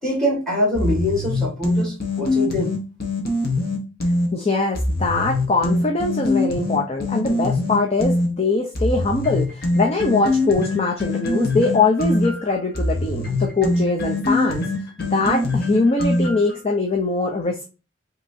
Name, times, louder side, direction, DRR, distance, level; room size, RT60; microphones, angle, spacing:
voice 1, 0.0-2.7, left 1 dB, 5° left, 1.8 m, -23 dB
sound 1, 0.8-4.3 4.8-8.3 8.8-16.6, left 2 dB, 50° left, 1.2 m, -23 dB
voice 2, 4.3-14.7 15.0-17.7, left 3 dB, 30° left, 0.6 m, -22 dB
5.8 x 3.0 x 2.7 m
head